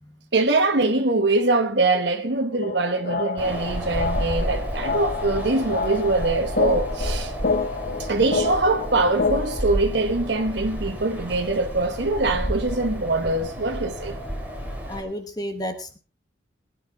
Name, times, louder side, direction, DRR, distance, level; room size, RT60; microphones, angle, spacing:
voice 1, 0.3-7.3 8.0-14.2, right 2 dB, 70° right, 1.2 m, -23 dB
sound 1, 2.6-9.6, left 4 dB, 55° left, 0.9 m, -28 dB
Wind, 3.4-15.0, equal, 10° right, 3.1 m, -31 dB
voice 2, 14.9-16.0, equal, 20° left, 1.2 m, -32 dB
21.0 x 9.7 x 3.6 m
head